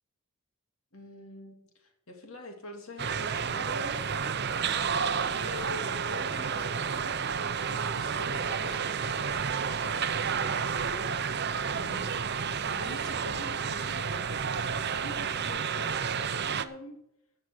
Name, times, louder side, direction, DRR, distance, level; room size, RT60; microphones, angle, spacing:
voice 1, 0.9-4.0 4.6-11.1 11.7-12.3 12.7-14.4 14.9-17.0, left 2 dB, 75° left, 3 dB, 2.5 m, -45 dB
sound 1, 3.0-16.6, right 6 dB, 50° right, 0.7 m, -31 dB
15.0 x 6.8 x 6.3 m, 0.77 s
head